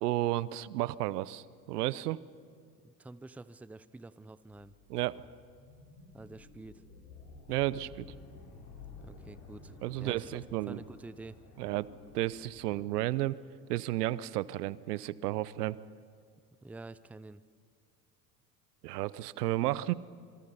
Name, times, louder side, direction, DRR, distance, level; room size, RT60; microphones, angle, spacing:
voice 1, 0.0-2.2 4.9-5.2 7.5-8.1 9.8-10.8 11.6-11.9 12.1-13.4 13.7-15.8 18.8-19.9, right 16 dB, 70° right, 20 dB, 0.8 m, -32 dB
voice 2, 2.8-4.7 6.1-6.8 9.0-10.4 10.7-11.4 16.6-17.4, right 2 dB, 5° right, 16 dB, 0.6 m, -48 dB
sound 1, 4.5-12.8, left 4 dB, 65° left, 4.6 m, -53 dB
26.5 x 25.0 x 5.5 m, 2.2 s
hypercardioid pair, 70°, 48 cm